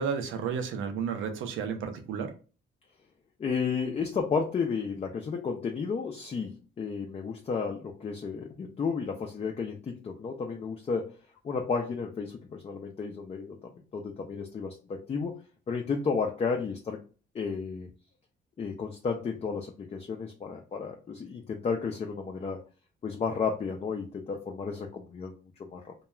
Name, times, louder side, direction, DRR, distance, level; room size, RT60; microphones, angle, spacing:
voice 1, 0.0-2.3, right 6 dB, 80° right, 6 dB, 0.6 m, -32 dB
voice 2, 3.4-11.1 11.4-15.3 15.7-17.0 17.3-17.9 18.6-22.6 23.0-25.9, left 5 dB, 30° left, 2 dB, 0.4 m, -32 dB
2.3 x 2.2 x 2.9 m, 0.36 s
cardioid pair, 90°, 20 cm